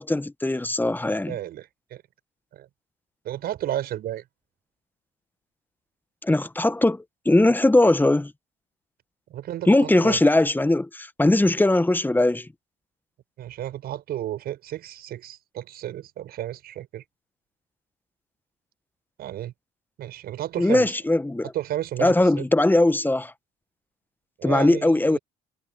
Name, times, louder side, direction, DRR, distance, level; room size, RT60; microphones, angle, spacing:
voice 1, 0.0-1.3 6.2-8.3 9.7-12.5 20.6-21.5 22.0-23.3 24.4-25.2, left 2 dB, 10° left, 1.4 m, -20 dB
voice 2, 1.3-2.0 2.5-2.7 3.2-4.2 9.3-10.2 13.4-17.0 19.2-19.5 20.0-20.9 21.5-22.5 24.4-25.2, right 12 dB, 65° right, 6.6 m, -32 dB
hypercardioid pair, 60°, 18 cm